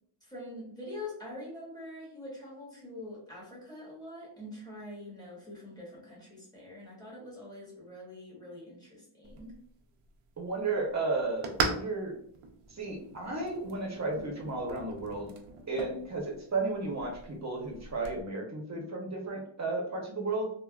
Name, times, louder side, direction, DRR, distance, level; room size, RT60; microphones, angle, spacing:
voice 1, 0.2-9.5, left 1 dB, 10° left, -5 dB, 1.1 m, -44 dB
sound 1, 9.2-18.2, right 4 dB, 90° right, 0.6 m, -40 dB
voice 2, 10.4-12.2 12.7-15.3 15.7-20.5, right 3 dB, 35° right, 0 dB, 0.7 m, -33 dB
3.4 x 2.1 x 2.3 m, 0.65 s
wide cardioid pair, 135°, 50 cm